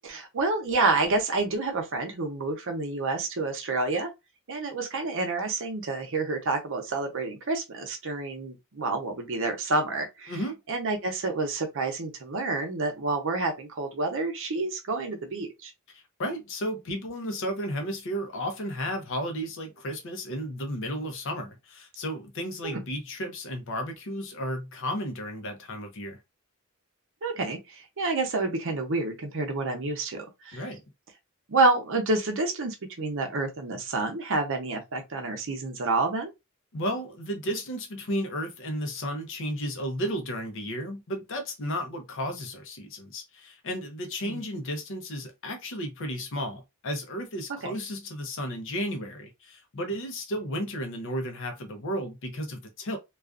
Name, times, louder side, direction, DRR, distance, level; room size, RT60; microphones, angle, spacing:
voice 1, 0.0-4.1 4.5-10.3 10.7-15.7 22.6-22.8 27.2-30.6 31.5-36.3 47.6-47.7, right 3 dB, 65° right, 0.7 m, -28 dB
voice 2, 10.3-10.6 15.9-26.2 30.5-30.8 36.7-53.0, equal, 65° left, 0.6 m, -33 dB
2.4 x 2.3 x 2.4 m
head